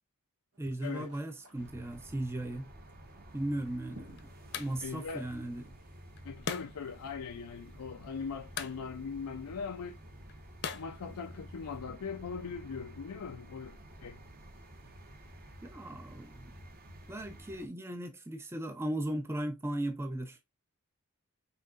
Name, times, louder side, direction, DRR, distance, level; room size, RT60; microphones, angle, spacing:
sound 1, 0.5-5.7, right 1 dB, 85° right, 1.8 m, -60 dB
voice 1, 0.6-2.7 3.3-4.2 4.5-5.7 15.6-16.5 17.1-20.4, right 1 dB, 10° right, 0.5 m, -37 dB
sound 2, 1.6-17.7, right 1 dB, 45° right, 1.1 m, -51 dB
sound 3, 3.3-11.8, left 6 dB, 50° left, 0.8 m, -46 dB
voice 2, 4.8-5.3 6.2-10.0 10.7-14.2, left 5 dB, 80° left, 0.5 m, -40 dB
5.7 x 3.7 x 2.4 m
head